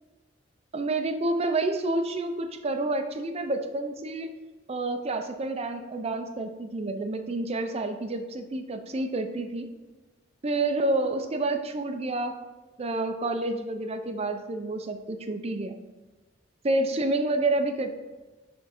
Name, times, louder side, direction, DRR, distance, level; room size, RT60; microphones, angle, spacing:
voice 1, 0.7-4.3 4.7-9.7 10.4-12.4 12.8-15.8 16.6-17.9, right 2 dB, 35° right, 7 dB, 0.5 m, -29 dB
6.8 x 3.7 x 4.3 m, 1.2 s
head